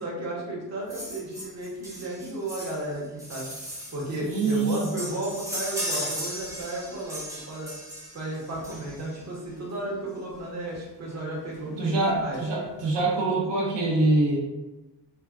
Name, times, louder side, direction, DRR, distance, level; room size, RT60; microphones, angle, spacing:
voice 1, 0.0-3.5 3.9-7.7 8.1-12.4, right 1 dB, 40° right, -4 dB, 0.9 m, -34 dB
sound 1, 0.9-9.2 10.3-10.4 10.7-10.8 11.1-11.2 11.6-12.2 12.6-12.7, equal, 10° right, 0.9 m, -37 dB
voice 2, 4.2-4.9 11.8-14.4, right 2 dB, 85° right, -4 dB, 0.7 m, -24 dB
3.3 x 2.2 x 2.4 m, 1.1 s
cardioid pair, 80°, 42 cm